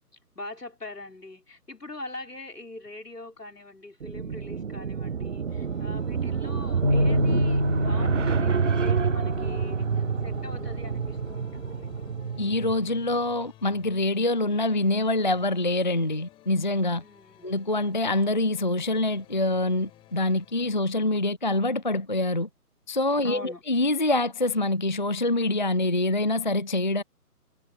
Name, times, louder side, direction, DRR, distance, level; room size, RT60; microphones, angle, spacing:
voice 1, 0.4-9.9 10.2-12.2 17.0-17.5 23.2-23.6, left 2 dB, 75° left, 5.3 m, -42 dB
sound 1, 4.0-12.8, right 6 dB, 50° right, 0.8 m, -28 dB
sound 2, 5.5-20.8, left 15 dB, 10° left, 4.0 m, -55 dB
Bass guitar, 6.8-13.1, left 1 dB, 15° right, 0.6 m, -29 dB
voice 2, 12.4-17.0 17.4-22.5 22.9-27.0, left 2 dB, 30° left, 0.5 m, -25 dB
figure-of-eight pair, 145°, 47 cm